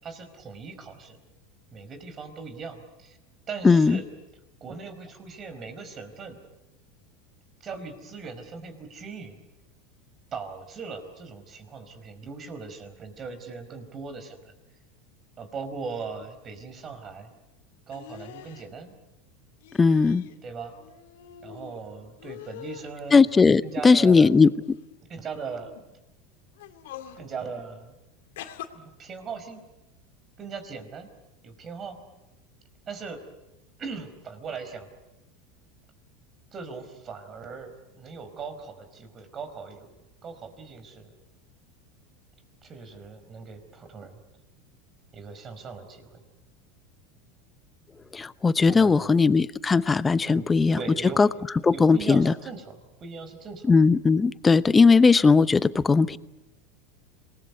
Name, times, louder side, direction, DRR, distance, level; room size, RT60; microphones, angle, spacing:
voice 1, 0.0-1.2 1.7-3.2 3.5-4.0 4.6-6.4 7.6-9.4 10.3-14.5 15.4-17.3 17.9-18.9 20.4-20.7 21.4-23.3 23.6-24.3 25.1-25.7 27.2-27.9 28.7-29.6 30.4-31.1 31.4-32.0 32.9-33.2 33.8-34.9 36.5-39.9 40.2-41.1 42.6-44.1 45.1-46.2 48.7-49.2 50.3-53.7, right 5 dB, 35° right, 10 dB, 4.8 m, -39 dB
voice 2, 3.6-4.0 19.8-20.2 23.1-24.5 48.1-50.8 51.2-51.3 51.6-52.3 53.7-56.2, left 4 dB, 20° left, 16 dB, 0.9 m, -18 dB
sound 1, 17.9-18.7 19.6-20.4 20.7-21.8 22.2-22.9 23.6-24.7 25.5-25.8 26.5-27.2 28.4-28.7, left 11 dB, 75° left, 2.3 m, -44 dB
27.0 x 20.5 x 8.3 m, 0.99 s
hypercardioid pair, 95°, 0 cm